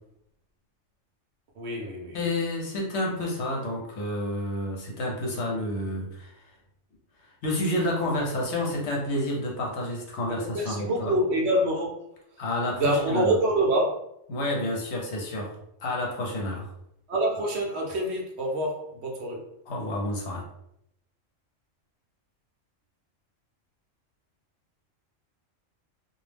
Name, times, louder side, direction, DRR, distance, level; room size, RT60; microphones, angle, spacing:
voice 1, 1.6-2.2 10.3-11.9 12.8-14.0 17.1-19.5, right 1 dB, 65° right, -1 dB, 0.8 m, -26 dB
voice 2, 2.1-6.3 7.4-11.1 12.4-13.3 14.3-15.5 15.8-16.7 19.7-20.4, left 1 dB, 65° left, -1 dB, 0.9 m, -29 dB
2.4 x 2.0 x 3.2 m, 0.78 s
omnidirectional pair, 1.3 m